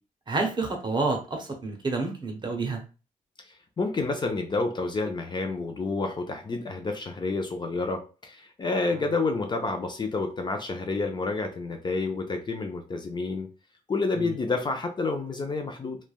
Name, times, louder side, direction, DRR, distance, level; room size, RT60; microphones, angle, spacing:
voice 1, 0.3-2.8 14.2-14.3, right 3 dB, 30° right, 3 dB, 0.7 m, -29 dB
voice 2, 3.5-13.5 13.9-16.0, left 3 dB, 30° left, 4 dB, 0.4 m, -29 dB
3.2 x 2.1 x 2.2 m, 0.34 s
wide cardioid pair, 120°, 14 cm